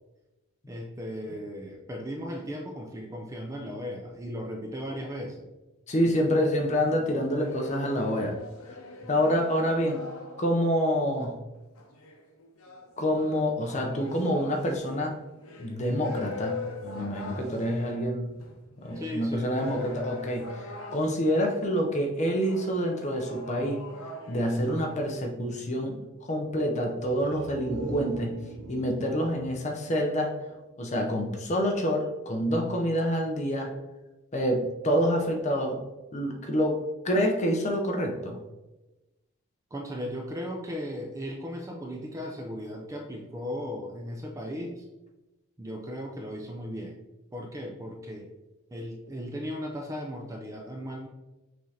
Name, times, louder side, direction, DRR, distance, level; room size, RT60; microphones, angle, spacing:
voice 1, 0.7-5.5 18.9-19.7 39.7-44.9 45.6-47.0 47.3-48.3 48.7-51.1, equal, 15° right, 1 dB, 0.4 m, -36 dB
voice 2, 5.9-8.3 9.1-10.1 10.4-11.4 13.0-15.2 15.6-18.4 18.8-20.5 20.9-23.9 24.3-28.4 28.7-30.4 30.8-33.7 34.3-35.8 36.1-38.4, equal, 30° left, 2 dB, 0.6 m, -27 dB
sound 1, 7.3-10.8 11.8-21.7 22.3-25.0, left 3 dB, 75° left, 0.7 m, -42 dB
sound 2, 27.0-30.8 31.1-31.2, right 3 dB, 85° right, 0.8 m, -39 dB
5.9 x 3.2 x 2.7 m, 1.1 s
head